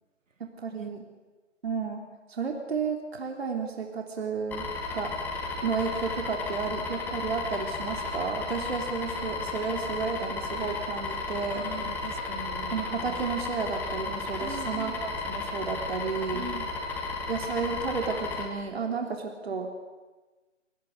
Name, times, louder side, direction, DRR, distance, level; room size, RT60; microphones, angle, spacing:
voice 1, 0.4-1.1 1.6-2.0 2.3-4.7 4.9-5.1 5.6-11.7 12.7-16.5 17.3-19.7, right 5 dB, 55° right, 2 dB, 3.5 m, -32 dB
sound 1, 4.5-18.5, left 3 dB, 5° left, 1.6 m, -34 dB
voice 2, 11.5-12.8 14.4-15.0 16.3-16.8 19.0-19.1, right 3 dB, 85° right, 12 dB, 1.9 m, -41 dB
25.0 x 18.5 x 8.1 m, 1.2 s
figure-of-eight pair, 160°, 38 cm